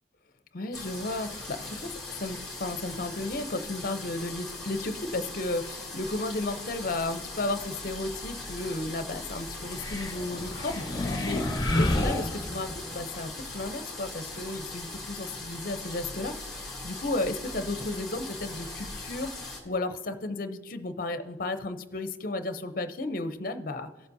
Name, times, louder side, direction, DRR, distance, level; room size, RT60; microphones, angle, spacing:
voice 1, 0.5-11.5 11.7-23.9, left 2 dB, 50° left, 9 dB, 0.6 m, -34 dB
sound 1, 0.7-19.6, left 2 dB, ahead, 2.0 m, -40 dB
sound 2, 9.7-13.0, left 1 dB, 20° left, 1.0 m, -30 dB
17.5 x 7.2 x 2.7 m, 1.2 s
head